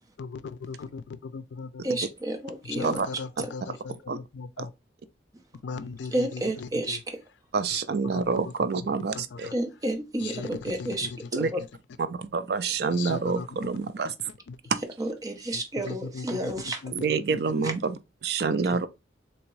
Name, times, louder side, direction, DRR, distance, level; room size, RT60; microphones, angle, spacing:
voice 1, 0.2-2.0 2.6-4.7 5.6-7.0 7.7-7.8 8.1-8.2 9.1-9.5 10.2-11.5 12.9-13.5 14.0-14.1 14.5-14.6 15.5-16.9, left 5 dB, 85° left, 0.4 m, -38 dB
voice 2, 1.8-3.0 6.1-7.2 9.5-11.4 15.0-16.8 17.6-17.7, right 1 dB, 20° right, 0.6 m, -31 dB
voice 3, 7.5-9.5 11.3-11.5 12.0-14.1 14.7-14.8 16.9-18.9, right 5 dB, 60° right, 0.4 m, -27 dB
3.5 x 2.9 x 3.1 m
head